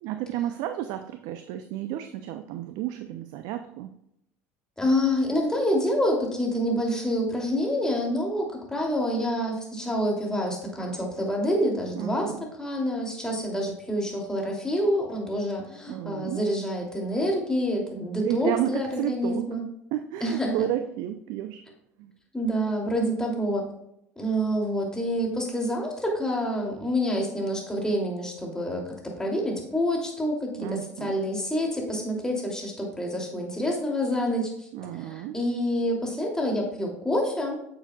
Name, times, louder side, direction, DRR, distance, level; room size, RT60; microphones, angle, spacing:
voice 1, 0.0-3.9 11.9-12.4 15.9-16.4 18.2-19.5 19.9-21.6 22.0-22.1 30.6-31.1 34.7-35.4, right 12 dB, 60° right, 8 dB, 0.5 m, -32 dB
voice 2, 4.8-12.3 12.6-19.7 20.2-20.7 22.3-23.6 24.2-34.7 34.9-37.6, equal, 10° left, -1 dB, 2.8 m, -27 dB
9.9 x 6.6 x 2.3 m, 0.79 s
hypercardioid pair, 70°, 8 cm